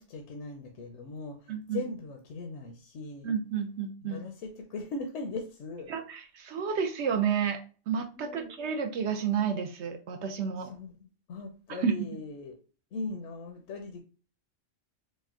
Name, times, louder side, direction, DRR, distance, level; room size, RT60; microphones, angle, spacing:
voice 1, 0.0-1.4 1.7-3.3 4.0-5.9 8.2-8.5 10.7-11.0 11.3-12.5 12.9-14.0, left 3 dB, 70° left, 4 dB, 0.9 m, -39 dB
voice 2, 1.5-1.8 3.2-4.2 5.9-7.6 7.9-10.7 11.7-12.1, right 7 dB, 65° right, 6 dB, 0.8 m, -31 dB
4.2 x 2.2 x 3.6 m, 0.36 s
omnidirectional pair, 1.3 m